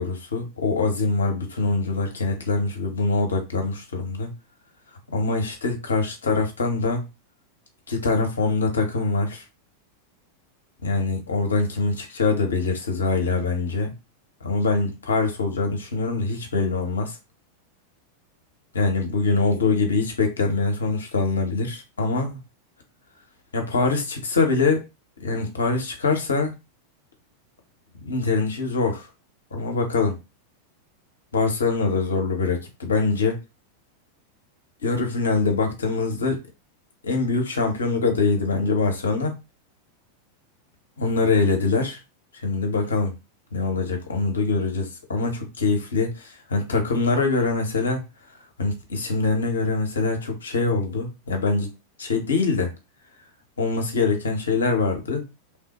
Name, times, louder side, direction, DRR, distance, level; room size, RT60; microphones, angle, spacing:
voice 1, 0.0-4.3 5.1-7.1 7.9-9.4 10.8-13.9 14.4-17.2 18.7-22.4 23.5-24.9 25.2-26.5 28.0-29.1 29.5-30.2 31.3-33.4 34.8-36.4 37.0-39.3 41.0-42.0 42.4-43.2 43.5-48.0 48.6-51.7 52.0-52.7 53.6-55.2, left 3 dB, 70° left, 0.8 m, -24 dB
3.2 x 2.1 x 2.9 m
figure-of-eight pair, 90°, 0 cm